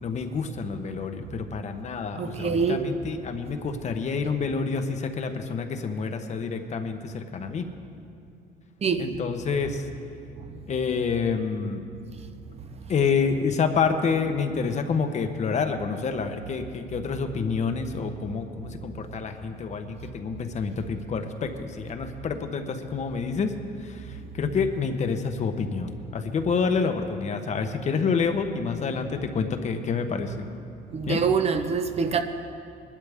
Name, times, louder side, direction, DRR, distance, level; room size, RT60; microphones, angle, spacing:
voice 1, 0.0-7.7 9.0-9.9 10.7-11.8 12.9-23.5 23.8-30.5 31.1-31.2, left 5 dB, 45° left, 1.0 m, -28 dB
voice 2, 2.2-2.9 8.8-9.1 30.9-32.2, right 5 dB, 40° right, 0.9 m, -24 dB
20.5 x 12.0 x 3.6 m
cardioid pair, 110°, 17 cm